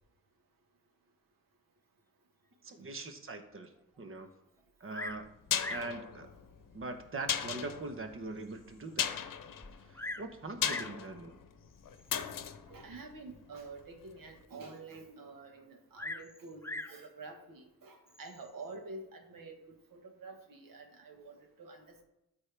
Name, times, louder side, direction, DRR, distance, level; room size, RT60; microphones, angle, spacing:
voice 1, 2.6-4.3 4.8-5.3 5.7-6.3 6.7-9.1 9.8-11.4, right 3 dB, 40° right, 7 dB, 1.0 m, -42 dB
Bird vocalization bird call bird song, 4.9-5.3 5.6-6.0 6.8-6.9 7.5-7.6 8.1-8.2 8.4-8.5 9.6-10.3 10.6-11.0 12.0-12.3 15.9-17.0 18.1-18.5, left 2 dB, 10° left, 0.4 m, -42 dB
sound 1, 5.1-14.0 14.2-14.3, left 8 dB, 75° left, 0.8 m, -38 dB
voice 2, 12.7-19.6 19.9-22.0, right 3 dB, 90° right, 4 dB, 1.5 m, -48 dB
13.0 x 5.4 x 3.4 m, 0.88 s
wide cardioid pair, 100°, 32 cm